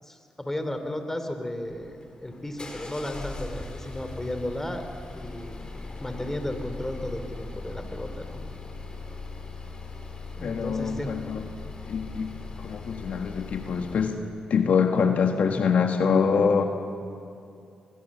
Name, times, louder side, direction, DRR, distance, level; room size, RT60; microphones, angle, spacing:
voice 1, 0.0-4.8 5.1-5.5 6.0-8.4 10.4-11.1, left 1 dB, 15° left, 7 dB, 3.0 m, -34 dB
sound 1, 1.7-14.2, left 3 dB, 35° left, 4.1 m, -39 dB
voice 2, 10.4-11.4 11.9-14.2 14.5-16.7, left 6 dB, 70° left, 5 dB, 1.5 m, -24 dB
23.5 x 20.5 x 7.4 m, 2.5 s
cardioid pair, 65°, 3 cm